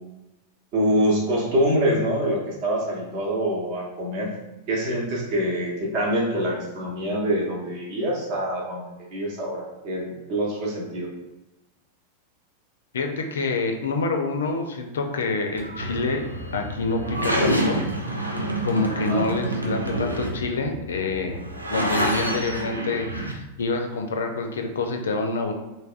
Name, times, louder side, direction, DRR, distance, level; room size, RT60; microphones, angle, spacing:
voice 1, 0.7-4.3 4.7-8.8 9.1-11.1 19.0-19.3, equal, 45° right, -2 dB, 0.8 m, -25 dB
voice 2, 12.9-16.3 16.5-17.8 18.6-21.4 21.7-25.5, left 3 dB, 65° left, 4 dB, 0.4 m, -27 dB
sound 1, 15.6-23.3, right 1 dB, 85° right, 0.4 m, -27 dB
3.4 x 2.1 x 2.4 m, 0.98 s
figure-of-eight pair, 90°, 0 cm